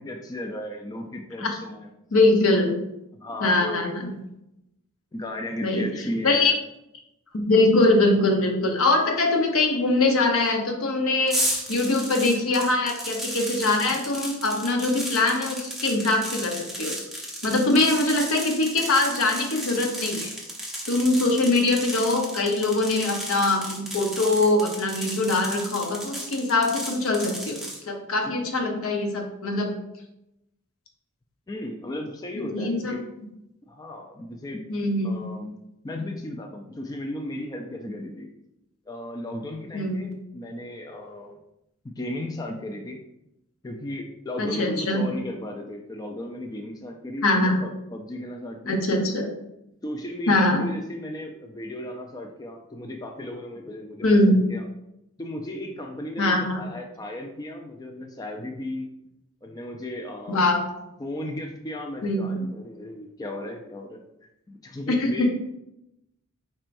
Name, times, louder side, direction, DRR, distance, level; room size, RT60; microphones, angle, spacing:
voice 1, 0.0-1.9 3.1-3.9 5.1-6.6 28.2-28.3 31.5-33.0 33.7-34.6 35.0-35.5 35.8-38.3 38.9-41.4 41.8-43.0 43.6-48.8 49.8-54.7 55.2-58.9 59.4-60.5 61.0-64.0 64.5-65.3, left 1 dB, 15° left, 2 dB, 0.4 m, -35 dB
voice 2, 2.1-2.7 3.4-4.1 5.6-5.9 6.2-6.5 7.3-20.3 20.9-29.7 32.3-32.9 34.7-35.3 39.7-40.2 44.4-45.0 47.2-47.6 48.7-49.3 50.3-50.6 54.0-54.4 56.2-56.6 60.3-60.6 62.0-62.4 64.9-65.3, left 2 dB, 70° left, 3 dB, 0.8 m, -23 dB
sound 1, 11.3-27.8, equal, ahead, 0.8 m, -34 dB
4.5 x 4.4 x 2.6 m, 0.85 s
head